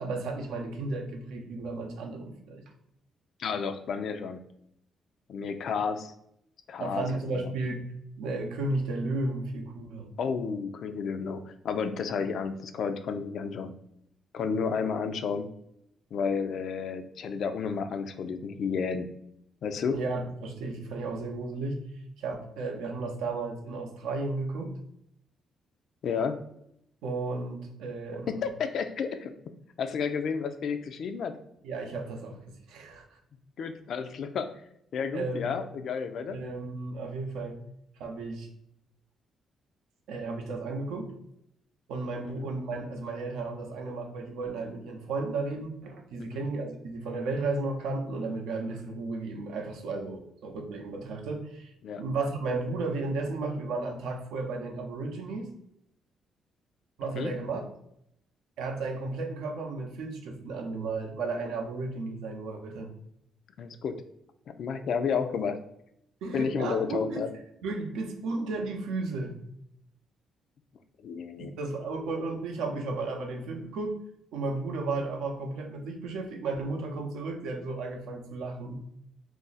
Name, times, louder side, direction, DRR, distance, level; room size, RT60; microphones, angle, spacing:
voice 1, 0.0-2.6 6.8-7.8 8.2-10.1 19.9-21.8 22.2-24.7 27.0-28.5 31.6-33.2 35.1-35.4 36.3-37.6 38.0-38.5 40.1-41.1 41.9-55.5 57.0-57.6 58.6-62.9 66.2-67.2 67.6-69.4 71.4-74.0 74.3-78.8, right 3 dB, 90° right, 3 dB, 0.5 m, -34 dB
voice 2, 3.4-4.4 5.3-6.1 6.7-7.0 7.3-7.5 10.2-13.7 14.3-15.5 16.1-19.1 19.6-20.0 26.0-26.4 28.3-29.3 29.8-31.4 33.6-34.5 34.9-36.4 42.4-42.5 46.3-46.5 51.8-52.0 57.2-57.3 63.6-64.0 64.6-65.6 66.3-67.3 71.0-71.5, left 6 dB, 65° left, 9 dB, 0.3 m, -31 dB
2.5 x 2.0 x 3.8 m, 0.76 s
cardioid pair, 90°, 0 cm